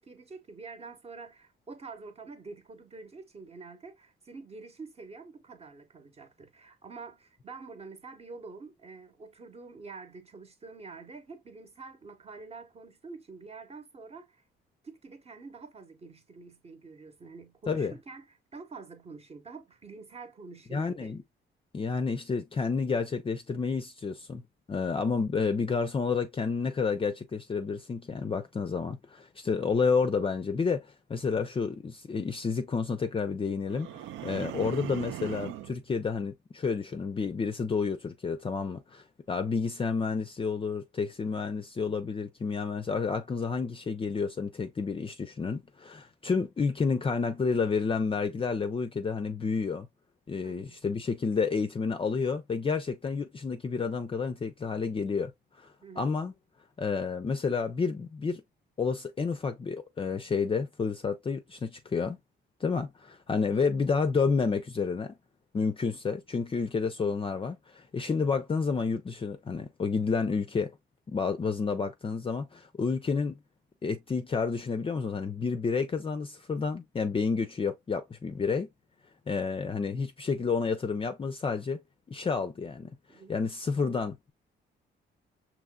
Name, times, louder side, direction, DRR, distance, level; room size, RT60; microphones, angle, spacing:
voice 1, 0.0-14.4 14.8-18.2 18.5-21.1 50.4-50.8 55.8-56.1 63.3-63.5 83.1-83.4, right 4 dB, 30° right, 1.0 m, -47 dB
voice 2, 20.7-21.2 21.7-24.4 24.7-49.9 50.3-55.3 55.6-56.3 56.8-58.4 58.8-62.2 62.6-65.2 65.5-70.8 71.1-73.4 73.8-78.7 79.3-81.8 82.1-82.9 83.3-84.3, left 5 dB, 25° left, 0.5 m, -30 dB
sound 1, 33.7-35.8, right 12 dB, 80° right, 0.4 m, -39 dB
5.5 x 3.0 x 2.2 m
cardioid pair, 90°, 20 cm